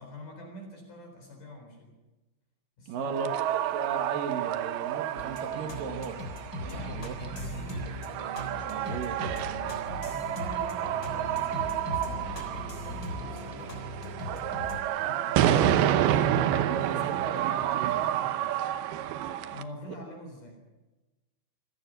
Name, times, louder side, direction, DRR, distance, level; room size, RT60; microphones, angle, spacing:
voice 1, 0.0-1.9 2.8-3.4 6.6-7.9 9.9-12.4 13.1-13.8 14.2-14.6 15.0-15.9 16.5-18.8 19.5-20.6, left 1 dB, 45° left, 3 dB, 5.3 m, -46 dB
voice 2, 2.9-6.2 6.9-7.1 7.8-7.9 8.7-9.2 15.4-16.0 16.5-18.0, right 6 dB, 55° right, 6 dB, 2.9 m, -36 dB
sound 1, 3.0-19.6, right 11 dB, 75° right, 2.4 m, -30 dB
sound 2, 5.2-14.8, left 1 dB, 20° left, 3.7 m, -39 dB
26.5 x 17.0 x 6.2 m, 1.1 s
omnidirectional pair, 5.5 m